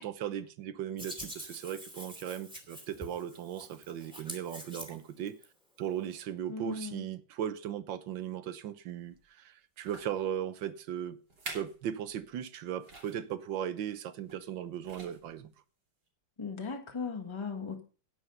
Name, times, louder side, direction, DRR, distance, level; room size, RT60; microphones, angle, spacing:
voice 1, 0.0-5.4 5.8-11.2 11.5-15.5, right 10 dB, 75° right, 1.7 m, -37 dB
Hands, 1.0-5.4, equal, 5° right, 2.5 m, -46 dB
voice 2, 6.5-7.0 16.4-17.8, left 5 dB, 15° left, 1.3 m, -37 dB
sound 1, 9.1-9.2 9.8-10.2 10.9-11.0 11.3-11.8 12.1-12.3 12.8-13.2 14.3-14.5 14.8-15.4 16.1-16.2, right 2 dB, 60° right, 3.8 m, -46 dB
10.5 x 9.0 x 5.4 m
omnidirectional pair, 2.1 m